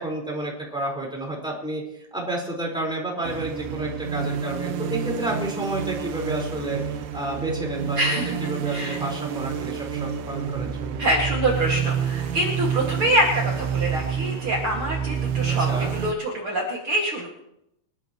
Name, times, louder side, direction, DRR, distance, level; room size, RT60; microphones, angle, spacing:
voice 1, 0.0-1.8 2.1-11.0 15.6-15.9, right 1 dB, ahead, -3 dB, 3.5 m, -30 dB
sound 1, 3.2-16.1, right 7 dB, 80° right, 3.1 m, -28 dB
voice 2, 8.0-9.0 11.0-17.3, right 1 dB, 60° right, -2 dB, 1.4 m, -25 dB
25.5 x 13.0 x 3.1 m, 0.79 s
omnidirectional pair, 6.0 m